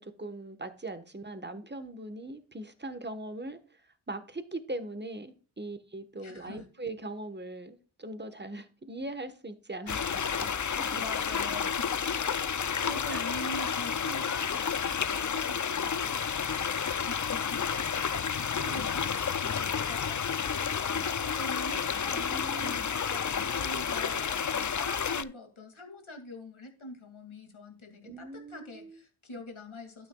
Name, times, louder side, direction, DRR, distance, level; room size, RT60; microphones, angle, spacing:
voice 1, 0.0-3.8 4.1-11.0 13.1-13.2 18.7-19.2 22.0-22.9 28.0-29.0, right 2 dB, 20° right, 1.2 m, -41 dB
voice 2, 6.2-6.7 11.0-16.3 16.9-17.7 18.0-30.1, left 1 dB, 70° left, 2.4 m, -44 dB
sound 1, 9.9-25.2, left 7 dB, 40° left, 0.5 m, -31 dB
12.0 x 9.1 x 2.3 m
wide cardioid pair, 80°, 49 cm